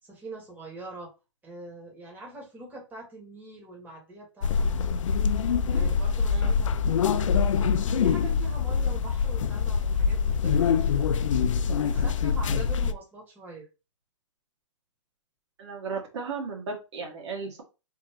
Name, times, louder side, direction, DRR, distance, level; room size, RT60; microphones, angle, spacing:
voice 1, 0.0-1.1 1.4-5.0 5.4-13.7, right 2 dB, 10° right, -2 dB, 1.8 m, -44 dB
sound 1, 4.4-12.9, left 6 dB, 80° left, 0.5 m, -24 dB
voice 2, 15.6-17.6, right 4 dB, 65° right, 1 dB, 2.0 m, -35 dB
4.7 x 3.7 x 2.9 m, 0.29 s
hypercardioid pair, 150°, 16 cm